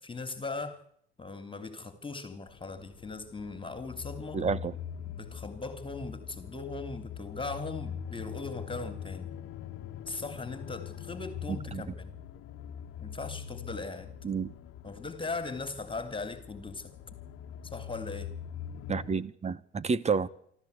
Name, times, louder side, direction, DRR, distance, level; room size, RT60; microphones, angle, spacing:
voice 1, 0.0-0.8 1.2-4.5 5.1-9.3 10.1-12.1 13.0-14.1 14.8-16.9 17.6-18.3, left 3 dB, 15° left, 2.9 m, -39 dB
sound 1, 2.5-19.2, left 8 dB, 40° left, 1.7 m, -43 dB
voice 2, 4.3-4.7 11.7-11.8 14.2-14.5 18.9-20.3, right 5 dB, 20° right, 1.1 m, -29 dB
26.5 x 13.5 x 8.2 m
hypercardioid pair, 75°, 34 cm